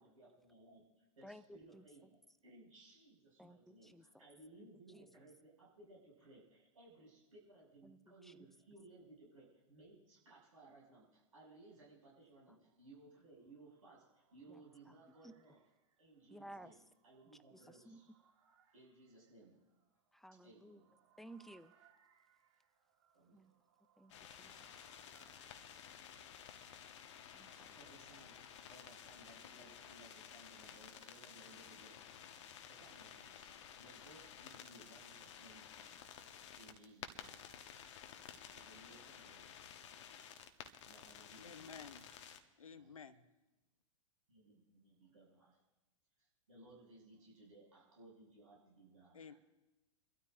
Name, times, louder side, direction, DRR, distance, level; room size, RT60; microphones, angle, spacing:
voice 1, 0.0-15.6 16.0-18.1 18.7-19.6 20.4-20.9 23.1-23.4 27.5-28.4 28.7-32.0 32.7-33.5 33.8-36.0 36.5-37.4 38.5-40.3 40.8-41.8 42.6-42.9 44.3-45.6 46.2-49.4, right 2 dB, 80° right, 6.4 m, -61 dB
voice 2, 1.2-1.8 3.4-4.3 4.6-4.7 4.9-5.1 7.8-8.5 14.5-14.6 15.2-15.3 16.3-16.7 17.5-18.0 20.1-20.8 21.2-21.7 23.3-23.5 24.0-24.8 27.3-27.5, right 1 dB, ahead, 0.5 m, -56 dB
sound 1, 13.1-26.5, right 8 dB, 65° right, 1.7 m, -74 dB
sound 2, 24.1-42.4, left 8 dB, 60° left, 1.1 m, -54 dB
voice 3, 41.4-42.1 42.6-43.3 49.1-49.3, left 6 dB, 85° left, 0.8 m, -53 dB
27.0 x 12.5 x 2.6 m
hypercardioid pair, 105°, 17 cm